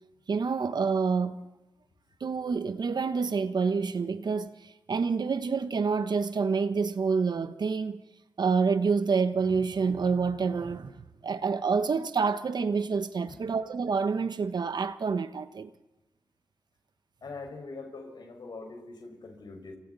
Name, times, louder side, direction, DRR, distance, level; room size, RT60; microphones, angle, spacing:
voice 1, 0.3-1.5 2.2-8.0 8.4-10.9 11.2-15.7, right 5 dB, 60° right, 1.2 m, -28 dB
voice 2, 17.2-19.8, left 3 dB, 65° left, 5.7 m, -43 dB
28.5 x 25.5 x 4.2 m
cardioid pair, 50°, 8 cm